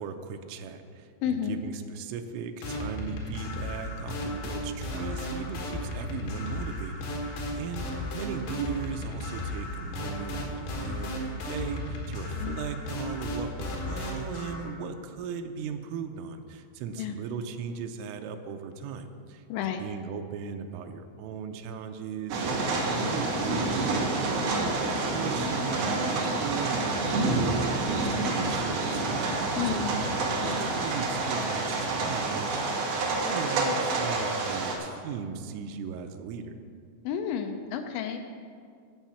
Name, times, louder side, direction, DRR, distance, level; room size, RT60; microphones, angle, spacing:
voice 1, 0.0-7.9 8.1-29.9 30.3-36.5, right 6 dB, 90° right, 6 dB, 3.2 m, -38 dB
voice 2, 1.2-1.6 12.4-12.6 17.0-17.2 19.5-19.8 29.6-30.1 37.0-38.2, left 8 dB, 85° left, 5 dB, 2.6 m, -31 dB
sound 1, 2.6-14.7, left 1 dB, 60° left, 3.0 m, -34 dB
sound 2, 22.3-34.8, right 3 dB, 60° right, 3.0 m, -28 dB
11.5 x 8.1 x 5.7 m, 2.2 s
omnidirectional pair, 5.7 m